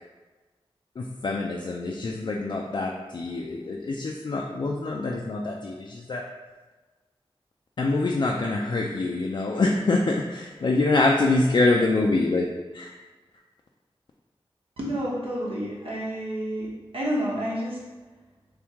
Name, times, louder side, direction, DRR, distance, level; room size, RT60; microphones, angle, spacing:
voice 1, 1.0-6.2 7.8-12.5 12.7-13.0, left 2 dB, 50° left, -1 dB, 0.3 m, -25 dB
voice 2, 14.8-17.8, equal, 70° right, -4 dB, 1.0 m, -29 dB
3.5 x 3.5 x 2.9 m, 1.3 s
wide cardioid pair, 75°, 10 cm